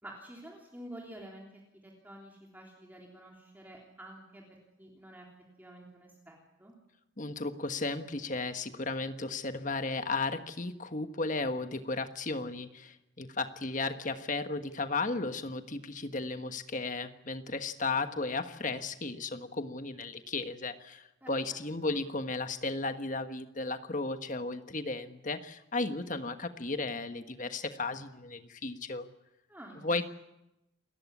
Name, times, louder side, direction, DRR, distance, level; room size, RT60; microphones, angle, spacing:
voice 1, 0.0-5.3 5.6-6.7 21.2-21.6 21.8-21.9 29.5-29.8, right 1 dB, 10° right, -1 dB, 3.3 m, -49 dB
voice 2, 7.2-29.1 29.8-30.0, left 3 dB, 40° left, 9 dB, 1.3 m, -34 dB
28.5 x 14.5 x 9.6 m, 0.92 s
head